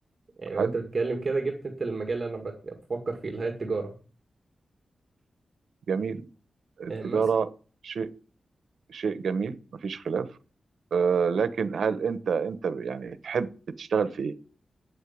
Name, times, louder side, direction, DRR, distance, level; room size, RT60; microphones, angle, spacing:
voice 1, 0.4-3.9 6.9-7.2, right 3 dB, 30° right, 2 dB, 1.9 m, -31 dB
voice 2, 5.9-6.2 6.8-7.5 7.8-8.1 8.9-9.6 9.8-10.3 10.9-13.5 13.8-14.3, right 6 dB, 70° right, 13 dB, 1.1 m, -27 dB
9.0 x 8.2 x 8.6 m, 0.39 s
wide cardioid pair, 175°, 0 cm